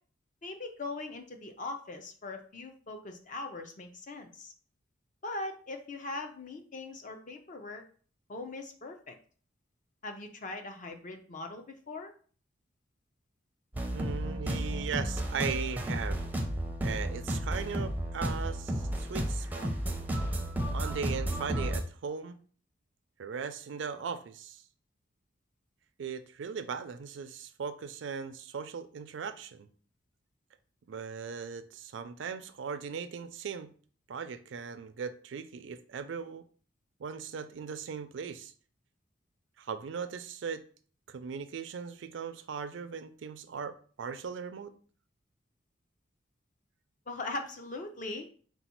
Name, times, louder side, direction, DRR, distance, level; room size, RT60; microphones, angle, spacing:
voice 1, 0.4-4.5 5.2-7.8 8.3-9.1 10.0-12.1 47.1-48.3, left 2 dB, 45° left, 5 dB, 0.6 m, -40 dB
sound 1, 13.7-21.8, right 1 dB, 10° right, 0.5 m, -33 dB
voice 2, 13.9-16.2 16.8-19.7 20.7-22.4 23.2-24.6 26.0-29.7 30.9-33.7 34.1-36.5 37.0-38.5 39.6-40.6 41.1-44.7, right 6 dB, 80° right, 11 dB, 0.4 m, -38 dB
4.0 x 2.3 x 4.3 m, 0.44 s
head